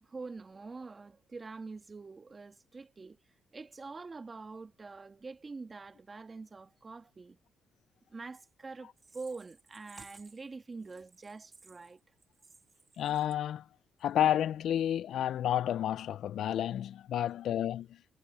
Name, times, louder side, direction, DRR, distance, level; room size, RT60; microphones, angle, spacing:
voice 1, 0.0-3.2 3.5-7.4 8.1-12.0, right 4 dB, 30° right, 2.3 m, -45 dB
voice 2, 13.0-13.6 14.0-18.0, left 11 dB, 70° left, 0.5 m, -30 dB
cardioid pair, 90°, 0 cm